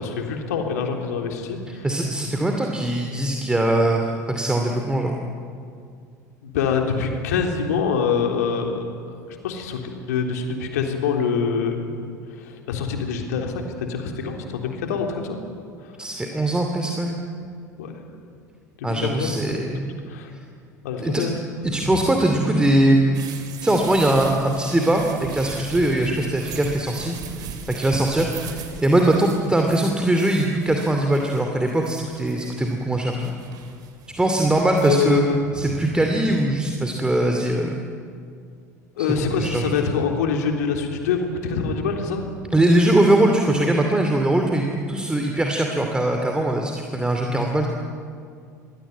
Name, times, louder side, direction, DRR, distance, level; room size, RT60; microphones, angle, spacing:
voice 1, 0.0-1.9 6.4-8.8 9.3-11.9 12.4-15.4 17.8-17.9 18.8-19.7 20.1-20.3 20.8-21.4 34.8-35.8 39.0-42.3, left 5 dB, 65° left, 3 dB, 3.5 m, -25 dB
voice 2, 1.8-5.2 16.0-17.1 18.8-19.9 21.0-21.3 21.6-23.2 23.6-33.4 34.2-35.2 35.5-37.7 39.0-39.1 39.4-39.9 42.5-47.7, right 1 dB, 10° right, 2 dB, 2.5 m, -21 dB
sound 1, 23.1-34.9, right 6 dB, 45° right, 3.3 m, -39 dB
27.0 x 20.0 x 9.3 m, 2.3 s
figure-of-eight pair, 70°, 10 cm